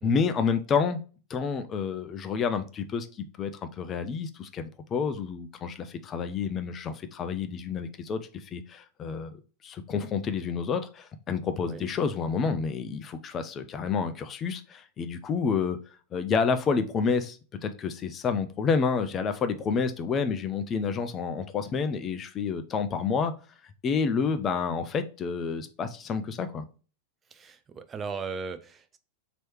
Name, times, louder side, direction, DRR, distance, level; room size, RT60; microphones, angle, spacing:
voice 1, 0.0-1.0 1.3-15.8 16.1-23.3 23.8-26.7, left 5 dB, 25° left, 0.5 m, -29 dB
voice 2, 27.3-29.0, right 5 dB, 20° right, 0.5 m, -37 dB
3.1 x 3.0 x 4.4 m
figure-of-eight pair, 90°, 0 cm